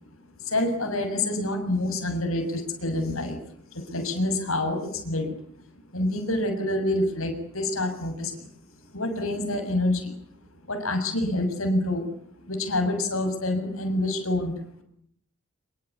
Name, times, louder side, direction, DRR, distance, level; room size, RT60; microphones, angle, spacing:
voice 1, 0.4-3.4 3.7-5.3 5.9-8.5 8.9-10.2 10.7-12.1 12.5-14.5, left 1 dB, 70° left, 5 dB, 7.0 m, -27 dB
26.5 x 23.5 x 8.5 m, 0.66 s
head